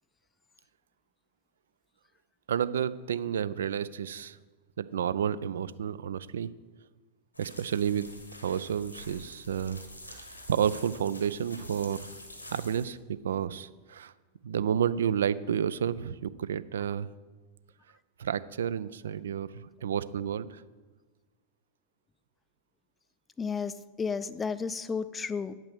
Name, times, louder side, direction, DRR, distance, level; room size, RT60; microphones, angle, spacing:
voice 1, 2.5-4.4 4.8-6.5 7.4-8.1 8.4-9.8 10.1-12.0 12.5-14.1 14.4-17.1 18.2-19.5 19.8-20.6, right 8 dB, 65° right, 16 dB, 0.3 m, -30 dB
sound 1, 7.3-12.9, left 1 dB, 85° left, 1.3 m, -47 dB
voice 2, 23.4-25.5, left 5 dB, 15° left, 14 dB, 0.4 m, -33 dB
8.9 x 5.9 x 6.6 m, 1.3 s
figure-of-eight pair, 90°, 0 cm